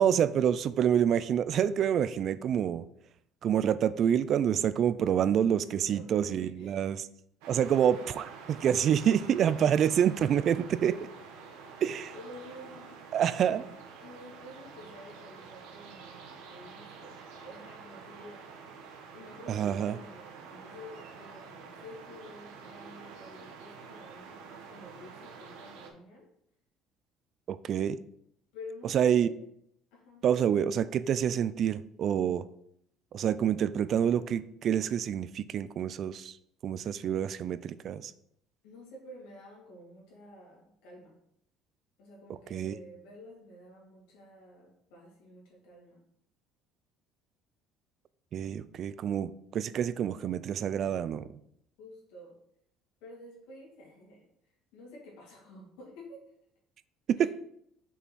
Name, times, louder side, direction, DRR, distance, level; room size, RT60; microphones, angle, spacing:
voice 1, 0.0-2.8 3.4-7.0 7.5-11.0 11.8-12.1 13.1-13.7 19.5-20.0 27.5-28.0 28.9-29.3 30.2-32.4 33.1-36.3 36.6-38.1 42.5-42.8 48.3-51.3 57.1-57.3, right 9 dB, 50° right, 0.3 m, -27 dB
voice 2, 5.8-6.8 12.1-13.0 14.0-18.5 19.1-26.3 28.5-29.4 29.9-30.3 38.6-41.2 42.0-46.0 51.8-52.4 53.0-54.3 54.7-56.2 57.2-57.3, left 1 dB, 90° left, 2.4 m, -50 dB
sound 1, 7.4-25.9, right 5 dB, 90° right, 1.0 m, -48 dB
5.7 x 4.2 x 4.6 m
cardioid pair, 115°, 0 cm